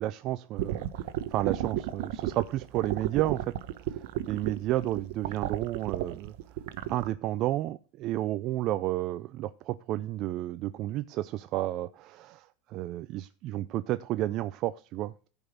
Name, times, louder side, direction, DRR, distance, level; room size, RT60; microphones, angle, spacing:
voice 1, 0.0-3.5 3.9-6.3 6.9-15.3, right 15 dB, 50° right, 0.4 m, -32 dB
sound 1, 0.6-7.1, right 13 dB, 70° right, 1.0 m, -33 dB
13.5 x 5.4 x 6.0 m
supercardioid pair, 110°, 0 cm